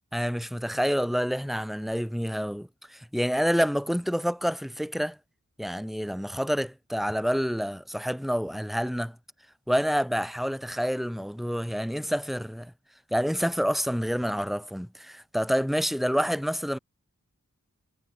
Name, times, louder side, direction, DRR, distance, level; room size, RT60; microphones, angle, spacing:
voice 1, 0.1-2.7 3.1-5.2 5.6-9.1 9.7-12.7 13.1-16.8, equal, ahead, 5.8 m, -28 dB
head